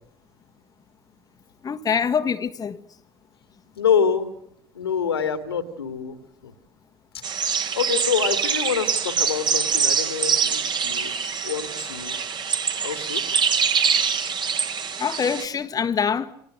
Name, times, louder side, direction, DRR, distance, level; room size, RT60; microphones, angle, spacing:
voice 1, 1.6-2.8 15.0-16.3, left 6 dB, 30° left, 1.6 m, -24 dB
voice 2, 3.8-4.3 4.7-6.2 6.4-6.5 7.1-7.2 7.7-11.1 11.4-12.2 12.8-13.2, left 7 dB, 80° left, 2.5 m, -26 dB
sound 1, 7.2-15.4, right 6 dB, 35° right, 3.5 m, -24 dB
30.0 x 26.5 x 6.6 m
figure-of-eight pair, 65°, 13 cm